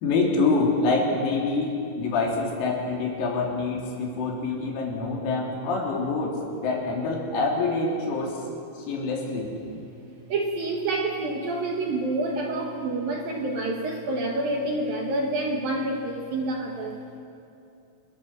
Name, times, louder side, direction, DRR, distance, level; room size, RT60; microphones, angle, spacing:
voice 1, 0.0-8.4 8.8-9.5, left 3 dB, 90° left, -2 dB, 6.4 m, -26 dB
voice 2, 10.3-17.0, right 2 dB, 60° right, 0 dB, 2.7 m, -28 dB
28.5 x 22.5 x 6.1 m, 2.6 s
omnidirectional pair, 6.0 m